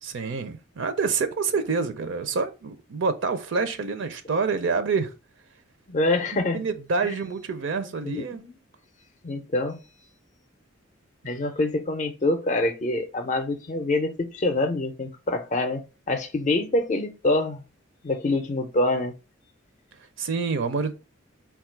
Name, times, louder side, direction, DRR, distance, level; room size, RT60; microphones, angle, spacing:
voice 1, 0.0-5.1 6.5-8.4 20.2-20.9, right 4 dB, 60° right, 0.4 m, -27 dB
voice 2, 5.9-6.6 7.0-7.2 7.8-8.6 9.2-9.8 11.2-17.6 18.0-19.1, left 2 dB, 35° left, 0.5 m, -26 dB
4.3 x 2.3 x 4.3 m
head